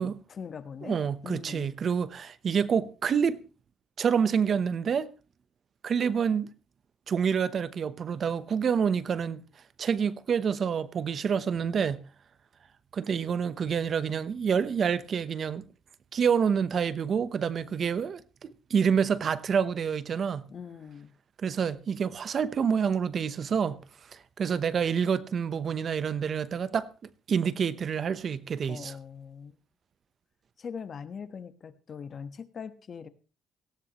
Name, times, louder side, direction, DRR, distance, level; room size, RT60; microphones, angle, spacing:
voice 1, 0.0-1.7 20.5-21.1 28.7-29.6 30.6-33.1, left 6 dB, 50° left, 1.3 m, -41 dB
voice 2, 0.8-3.4 4.0-5.1 5.8-6.5 7.1-9.4 9.8-12.0 12.9-15.6 16.1-20.4 21.4-23.8 24.1-26.9 27.3-28.9, right 7 dB, 55° right, 0.9 m, -27 dB
18.0 x 16.5 x 3.0 m
cardioid pair, 90°, 0 cm